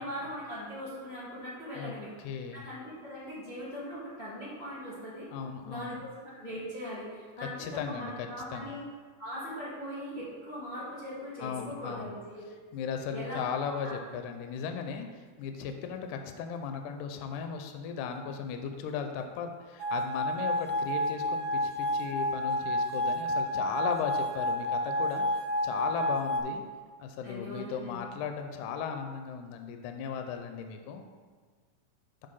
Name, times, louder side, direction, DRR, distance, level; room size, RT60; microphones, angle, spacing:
voice 1, 0.0-2.1 2.5-5.3 5.6-8.8 9.2-12.7 13.1-14.0 27.2-28.1, equal, 35° left, -10 dB, 1.0 m, -40 dB
voice 2, 2.2-2.6 5.3-6.0 7.6-8.1 8.5-8.7 11.4-12.1 12.7-25.3 25.6-26.6 27.0-31.1, left 6 dB, 80° left, 5 dB, 1.9 m, -36 dB
sound 1, 19.8-26.4, left 1 dB, 80° right, 2.0 m, -30 dB
6.5 x 3.7 x 5.5 m, 1.5 s
omnidirectional pair, 3.7 m